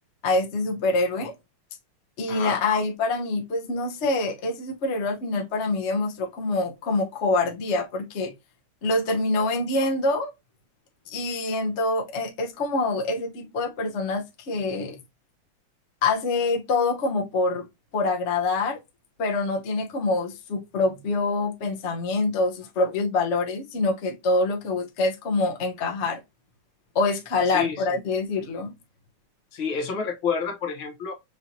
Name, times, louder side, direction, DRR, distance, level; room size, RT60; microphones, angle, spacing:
voice 1, 0.2-1.3 2.2-8.3 8.8-10.3 11.1-15.0 16.0-17.7 17.9-18.8 19.2-26.2 26.9-28.7, left 3 dB, 45° left, 0.9 m, -25 dB
voice 2, 2.3-2.6 27.5-27.8 29.5-31.1, left 6 dB, 70° left, 1.7 m, -29 dB
5.4 x 2.7 x 2.8 m
omnidirectional pair, 2.3 m